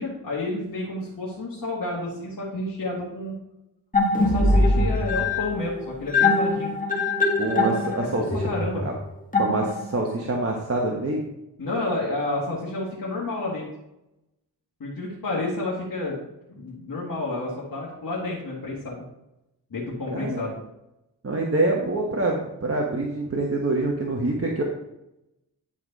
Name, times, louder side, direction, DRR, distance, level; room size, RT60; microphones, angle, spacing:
voice 1, 0.0-3.4 4.2-6.7 8.2-8.8 11.6-13.7 14.8-16.2 16.5-19.0 19.7-20.6, left 2 dB, 55° left, -6 dB, 2.0 m, -30 dB
sound 1, 3.9-10.1, left 2 dB, 20° left, 1.5 m, -23 dB
voice 2, 7.3-8.5 9.4-11.2 20.1-20.5 21.2-24.6, right 2 dB, 35° right, -1 dB, 1.2 m, -26 dB
9.9 x 4.9 x 4.1 m, 0.89 s
cardioid pair, 80°, 42 cm